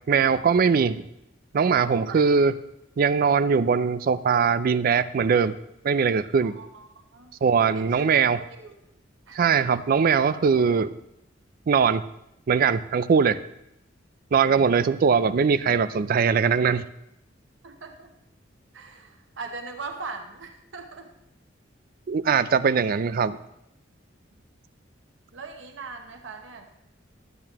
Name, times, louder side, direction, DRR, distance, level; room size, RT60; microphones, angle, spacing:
voice 1, 0.1-1.1 1.5-2.6 3.0-5.6 5.8-6.6 7.4-8.4 9.3-11.0 11.7-12.0 12.5-13.4 14.3-16.8 22.1-23.4, right 6 dB, 50° right, 15 dB, 0.4 m, -21 dB
voice 2, 1.8-2.2 6.4-7.3 7.7-8.1 8.4-8.7 9.3-9.5 17.6-18.1 18.7-21.1 25.3-26.7, right 4 dB, 70° right, 4 dB, 0.8 m, -40 dB
12.5 x 8.5 x 3.0 m, 0.83 s
head